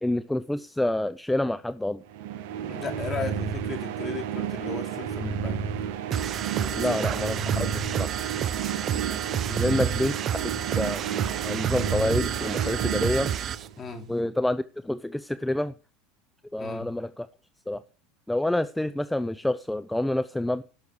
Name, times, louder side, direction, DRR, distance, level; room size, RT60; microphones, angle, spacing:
voice 1, 0.0-2.0 6.8-8.1 9.6-10.1 10.4-11.0 11.4-13.3 14.1-15.7 16.5-17.3 17.7-17.8 18.3-20.6, left 1 dB, 5° left, 0.6 m, -28 dB
sound 1, 2.1-14.0, right 8 dB, 75° right, 1.5 m, -32 dB
voice 2, 2.6-5.6 6.6-7.7 9.5-10.0 13.8-14.1 16.6-16.9, left 4 dB, 30° left, 3.1 m, -37 dB
sound 2, 6.1-13.7, right 9 dB, 40° right, 0.8 m, -30 dB
16.5 x 6.4 x 4.8 m
supercardioid pair, 105°, 0 cm